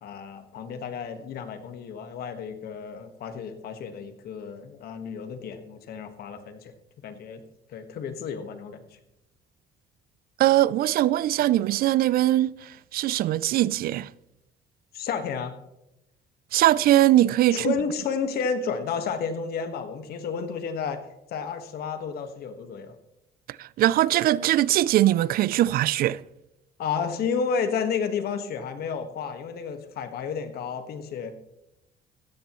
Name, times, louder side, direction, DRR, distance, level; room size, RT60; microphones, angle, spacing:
voice 1, 0.0-6.7 7.0-7.4 7.7-8.8 14.9-15.5 17.5-21.0 21.3-22.9 26.8-31.3, left 6 dB, 65° left, 1.6 m, -31 dB
voice 2, 10.4-14.1 16.5-17.7 23.6-26.2, right 14 dB, 60° right, 0.4 m, -21 dB
16.0 x 13.5 x 3.1 m
cardioid pair, 110°, 17 cm